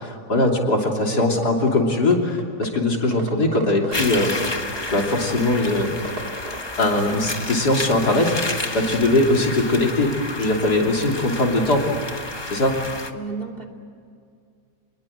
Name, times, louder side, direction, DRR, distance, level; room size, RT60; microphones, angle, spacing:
voice 1, 0.0-4.4 4.9-5.9 6.8-10.1 10.4-11.8 12.5-12.8, left 2 dB, 65° left, 1 dB, 3.7 m, -20 dB
sound 1, 0.8-0.9 1.2-1.7 2.1-2.2 2.4-2.8 3.0-6.6, right 2 dB, 60° right, 3.2 m, -34 dB
sound 2, 3.9-13.1, left 2 dB, 15° left, 1.0 m, -31 dB
voice 2, 13.1-13.7, right 4 dB, 30° right, 2 dB, 2.9 m, -33 dB
28.0 x 21.0 x 8.8 m, 2.3 s
omnidirectional pair, 1.9 m